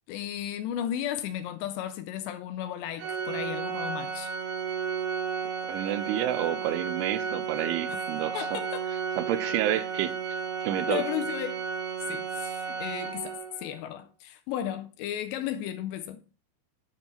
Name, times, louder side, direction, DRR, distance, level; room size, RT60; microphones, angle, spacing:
voice 1, 0.1-4.3 7.9-8.1 8.3-8.9 10.9-11.6 12.0-16.2, left 11 dB, 85° left, 2.5 m, -34 dB
Organ, 3.0-13.7, right 6 dB, 70° right, 2.8 m, -33 dB
voice 2, 5.7-8.4 9.2-10.1 10.6-11.0, right 12 dB, 90° right, 3.1 m, -29 dB
9.8 x 4.5 x 5.6 m
omnidirectional pair, 5.4 m